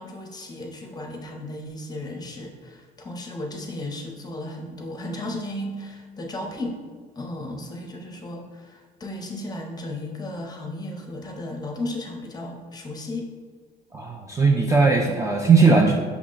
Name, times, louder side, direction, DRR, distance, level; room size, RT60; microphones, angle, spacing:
voice 1, 0.0-6.8 7.2-13.3, left 1 dB, 20° left, 2 dB, 0.6 m, -34 dB
voice 2, 13.9-15.9, right 4 dB, 15° right, 0 dB, 0.3 m, -18 dB
5.8 x 2.1 x 3.7 m, 1.5 s
cardioid pair, 120°, 20 cm